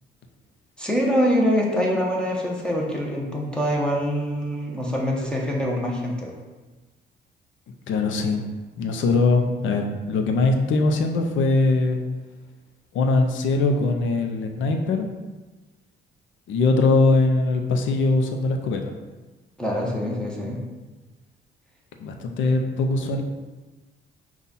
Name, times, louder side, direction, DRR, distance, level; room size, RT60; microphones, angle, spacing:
voice 1, 0.8-6.3 19.6-20.6, equal, 5° left, -2 dB, 1.0 m, -24 dB
voice 2, 7.9-12.0 12.9-15.1 16.5-18.9 22.0-23.2, left 3 dB, 75° left, 5 dB, 0.6 m, -21 dB
5.4 x 2.4 x 4.1 m, 1.2 s
cardioid pair, 90°, 20 cm